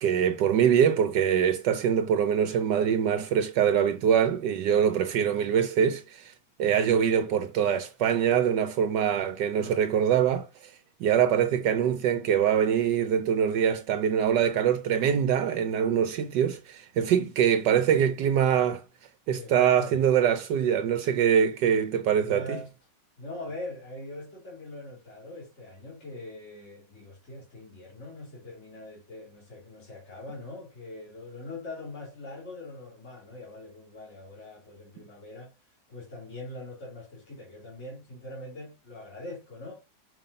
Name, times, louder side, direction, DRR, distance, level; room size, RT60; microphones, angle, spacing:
voice 1, 0.0-6.3 6.6-10.7 11.0-18.8 19.3-22.6, right 8 dB, 75° right, 1.3 m, -24 dB
voice 2, 19.3-20.0 22.2-22.7 23.2-35.5 35.9-39.8, left 2 dB, 40° left, 2.9 m, -42 dB
5.6 x 5.5 x 5.2 m
omnidirectional pair, 1.9 m